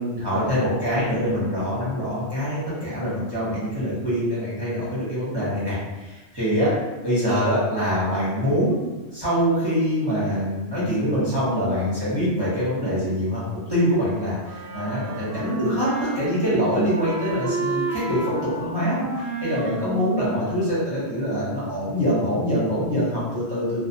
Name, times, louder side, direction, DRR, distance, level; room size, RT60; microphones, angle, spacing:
voice 1, 0.0-6.7 7.0-8.8 9.1-13.4 13.7-23.8, equal, 25° right, -10 dB, 0.6 m, -24 dB
Wind instrument woodwind instrument, 14.4-21.0, right 3 dB, 75° right, 0.9 m, -32 dB
2.5 x 2.0 x 2.7 m, 1.2 s
omnidirectional pair, 1.5 m